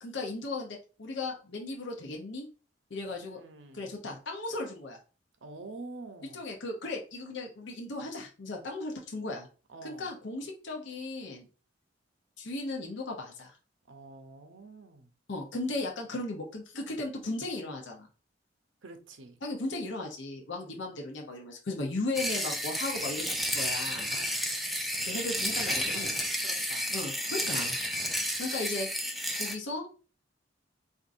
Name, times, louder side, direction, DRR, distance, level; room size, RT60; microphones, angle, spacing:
voice 1, 0.0-2.5 2.9-3.4 3.7-5.0 6.3-9.5 9.8-11.5 12.4-13.6 15.3-18.1 19.4-24.1 25.1-26.4 26.9-27.8 28.4-28.9 29.4-29.9, left 2 dB, 70° left, 0.8 m, -36 dB
voice 2, 3.2-3.9 5.4-6.4 9.7-10.1 13.9-15.1 18.8-19.4 20.5-20.8 24.1-24.4 25.7-27.0, right 3 dB, 80° right, 0.6 m, -47 dB
sound 1, 22.1-29.5, equal, ahead, 0.3 m, -32 dB
4.4 x 2.6 x 2.5 m
head